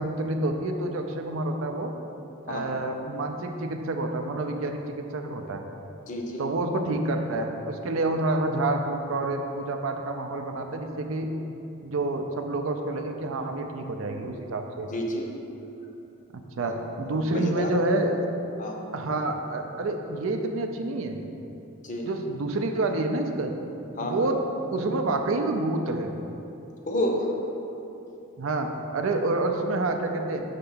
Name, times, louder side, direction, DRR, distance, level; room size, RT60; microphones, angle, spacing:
voice 1, 0.0-1.9 2.5-5.6 6.4-11.3 11.8-14.9 16.3-18.2 18.9-21.2 22.0-23.5 24.0-24.4 24.7-26.1 28.4-30.4, right 2 dB, 65° right, 5 dB, 0.5 m, -28 dB
voice 2, 6.1-6.4 14.9-15.3 16.6-16.7 17.1-17.7 18.6-18.8 21.8-22.1 24.0-24.3 26.9-27.3, left 1 dB, 35° left, 1 dB, 0.7 m, -30 dB
5.8 x 3.4 x 5.5 m, 2.9 s
head